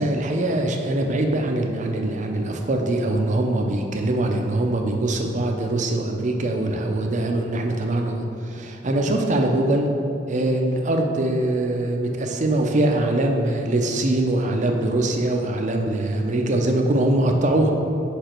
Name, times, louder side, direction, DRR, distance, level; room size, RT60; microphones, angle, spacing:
voice 1, 0.0-9.9 10.3-17.7, right 1 dB, 40° right, 3 dB, 0.6 m, -22 dB
5.5 x 5.0 x 4.4 m, 2.7 s
head